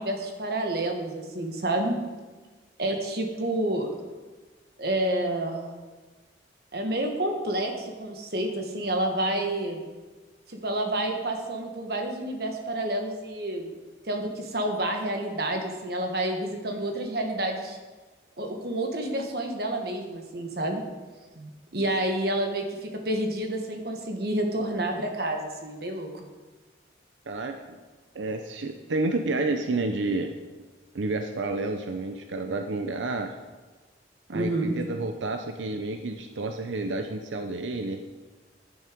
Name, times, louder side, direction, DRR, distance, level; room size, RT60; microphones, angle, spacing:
voice 1, 0.0-2.0 2.8-3.9 4.8-5.7 6.7-9.8 10.5-13.7 14.0-17.8 18.4-20.8 21.3-26.3 34.3-34.7, right 1 dB, 55° right, 3 dB, 1.5 m, -29 dB
voice 2, 27.3-27.8 28.1-30.3 30.9-33.4 34.3-38.0, right 2 dB, 90° right, 6 dB, 0.6 m, -30 dB
9.6 x 9.4 x 5.1 m, 1.3 s
head